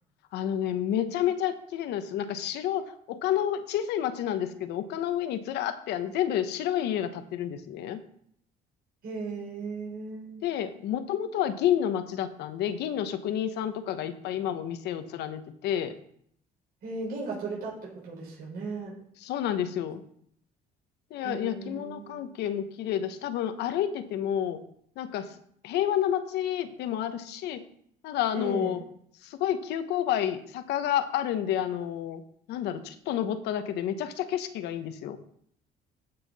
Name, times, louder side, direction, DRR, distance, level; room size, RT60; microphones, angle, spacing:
voice 1, 0.3-8.0 10.4-16.0 19.2-20.0 21.1-24.6 25.0-25.3 25.6-27.6 28.0-28.8 29.2-32.2 32.5-35.2, left 10 dB, 80° left, 10 dB, 1.0 m, -30 dB
voice 2, 9.0-10.4 16.8-19.0 21.2-22.2 28.3-28.7, right 3 dB, 65° right, -5 dB, 5.1 m, -36 dB
15.5 x 5.7 x 4.2 m, 0.66 s
cardioid pair, 110°, 17 cm